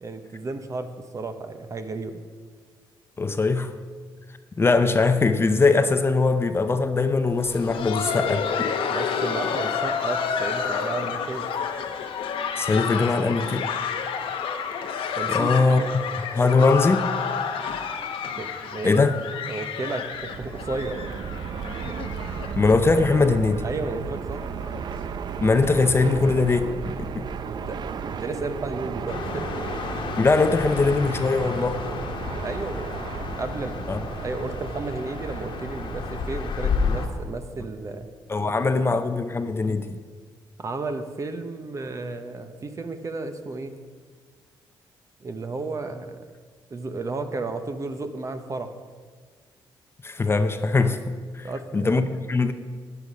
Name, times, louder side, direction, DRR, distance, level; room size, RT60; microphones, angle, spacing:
voice 1, 0.0-2.2 8.9-11.5 12.7-13.0 15.1-15.5 15.8-16.0 17.5-17.7 18.3-19.1 19.5-21.0 23.6-24.4 27.5-29.4 32.4-33.9 34.2-38.1 38.4-39.0 39.7-39.8 40.6-43.8 45.2-46.2 46.7-48.7 51.4-52.0, right 3 dB, 35° right, 8 dB, 1.0 m, -33 dB
voice 2, 3.2-3.8 4.6-8.7 12.6-13.7 15.3-17.1 18.8-19.2 22.5-23.6 25.4-27.2 30.2-31.8 33.9-34.0 38.3-40.0 50.0-51.0 51.3-51.5 51.7-52.5, left 3 dB, 25° left, 9 dB, 0.6 m, -21 dB
Laughter, 7.3-23.0 23.3-23.4 23.9-24.1 24.6-24.8 25.9-26.0, left 6 dB, 80° left, 1.0 m, -29 dB
Fixed-wing aircraft airplane, 20.1-36.5, right 6 dB, 55° right, 0.6 m, -34 dB
sound 1, 29.1-37.1, left 5 dB, 65° left, 1.4 m, -31 dB
11.5 x 9.9 x 5.3 m, 1.5 s
cardioid pair, 100°, 9 cm